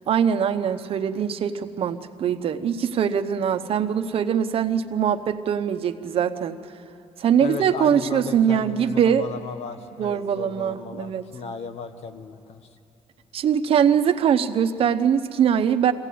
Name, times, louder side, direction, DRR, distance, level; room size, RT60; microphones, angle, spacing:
voice 1, 0.1-6.6 7.2-9.3 10.0-11.2 13.3-15.9, right 8 dB, 60° right, 9 dB, 0.9 m, -22 dB
voice 2, 7.4-12.7, left 5 dB, 75° left, 8 dB, 1.3 m, -35 dB
22.5 x 16.5 x 8.5 m, 3.0 s
cardioid pair, 135°, 11 cm